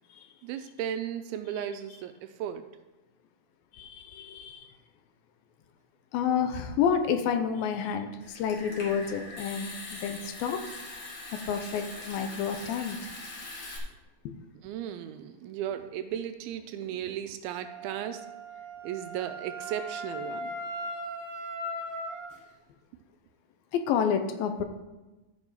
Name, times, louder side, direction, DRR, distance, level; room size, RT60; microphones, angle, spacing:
voice 1, 0.4-2.6 14.6-18.3 18.8-20.6, right 10 dB, 80° right, 9 dB, 2.3 m, -35 dB
voice 2, 3.7-4.7 6.1-10.6 11.3-13.0 14.3-14.4 23.7-24.6, left 7 dB, 80° left, 7 dB, 2.3 m, -29 dB
Water tap faucet / Sink (filling or washing) / Trickle dribble, 8.2-13.8, left 2 dB, 45° left, 2.3 m, -42 dB
Wind instrument woodwind instrument, 17.6-22.3, right 1 dB, 25° right, 1.1 m, -38 dB
13.0 x 5.2 x 4.9 m, 1.1 s
omnidirectional pair, 4.6 m